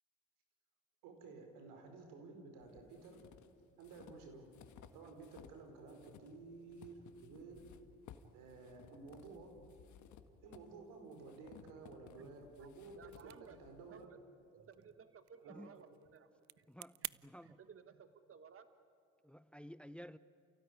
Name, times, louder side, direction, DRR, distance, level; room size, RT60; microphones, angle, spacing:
voice 1, 1.0-3.2 3.8-4.5 4.9-7.7 8.3-9.6 10.4-14.1 15.4-15.6, right 3 dB, 85° right, 4.7 m, -53 dB
sound 1, 2.6-5.6 5.9-14.0, left 8 dB, 65° left, 1.7 m, -60 dB
voice 2, 12.9-13.6 13.9-14.2 14.5-16.7 17.0-18.7, right 7 dB, 45° right, 1.3 m, -58 dB
sound 2, 13.0-17.2, right 16 dB, 65° right, 0.6 m, -52 dB
voice 3, 16.7-17.6 19.2-20.2, equal, 5° left, 0.7 m, -53 dB
29.0 x 17.0 x 9.8 m
supercardioid pair, 70°, 31 cm